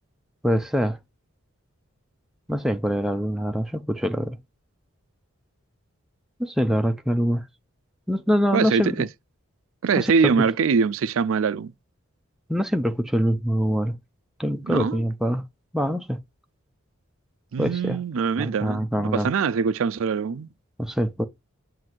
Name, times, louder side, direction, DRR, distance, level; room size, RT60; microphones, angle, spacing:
voice 1, 0.4-1.0 2.5-4.4 6.4-7.4 8.1-9.0 10.0-10.3 12.5-14.0 14.4-15.4 15.7-16.2 17.6-18.0 18.4-19.3 20.8-21.2, equal, ahead, 0.4 m, -24 dB
voice 2, 8.5-9.1 9.8-11.7 14.7-15.0 17.5-20.5, right 5 dB, 70° right, 0.4 m, -23 dB
7.6 x 2.6 x 5.9 m
head